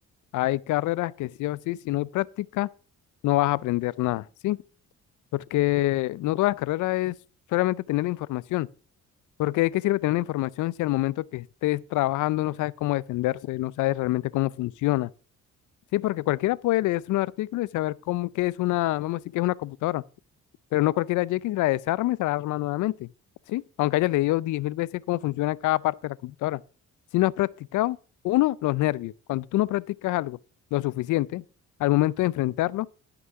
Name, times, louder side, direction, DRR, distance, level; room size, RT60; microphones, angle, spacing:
voice 1, 0.3-2.7 3.2-4.6 5.3-7.1 7.5-8.7 9.4-15.1 15.9-20.0 20.7-23.1 23.5-26.6 27.1-28.0 28.2-30.4 30.7-31.4 31.8-32.9, left 17 dB, 80° left, 0.5 m, -26 dB
12.5 x 6.1 x 5.6 m
cardioid pair, 90°, 30 cm